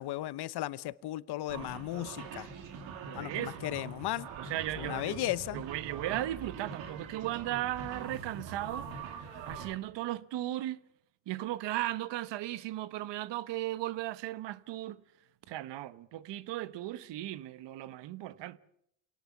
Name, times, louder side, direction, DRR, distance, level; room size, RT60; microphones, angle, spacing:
voice 1, 0.0-2.5 3.1-4.3 4.8-5.6, left 15 dB, 60° left, 0.9 m, -35 dB
sound 1, 1.5-9.7, right 6 dB, 90° right, 3.1 m, -43 dB
voice 2, 3.0-3.8 4.4-5.3 5.5-8.9 9.5-10.8 11.3-15.0 15.5-18.6, right 14 dB, 70° right, 1.1 m, -36 dB
26.5 x 18.5 x 7.1 m
cardioid pair, 115°, 44 cm